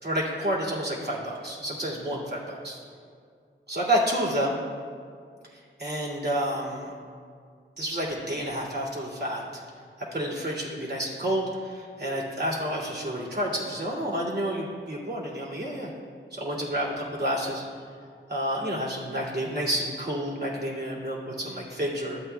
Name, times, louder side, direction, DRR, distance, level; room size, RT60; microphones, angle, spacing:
voice 1, 0.0-2.8 3.7-4.6 5.5-6.9 7.8-9.4 10.1-15.9 16.3-17.6 18.3-22.2, equal, 50° right, -6 dB, 2.3 m, -29 dB
12.5 x 8.4 x 2.2 m, 2.2 s
wide cardioid pair, 55°, 21 cm